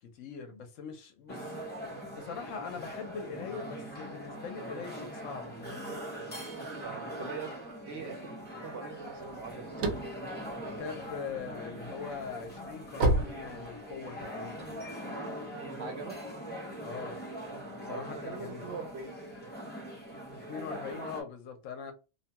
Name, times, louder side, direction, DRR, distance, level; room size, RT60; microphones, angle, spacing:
voice 1, 0.0-1.6 2.1-6.0 10.6-14.9 16.8-17.2 17.8-18.7 20.5-21.9, left 6 dB, 70° left, 1.0 m, -42 dB
sound 1, 1.3-21.2, equal, 10° left, 0.5 m, -42 dB
voice 2, 6.8-7.5 7.9-9.7 15.8-16.2 17.9-19.2, right 4 dB, 60° right, 0.9 m, -42 dB
sound 2, 9.3-11.5 12.0-14.2, right 1 dB, 90° right, 1.1 m, -30 dB
2.8 x 2.2 x 2.8 m
omnidirectional pair, 1.4 m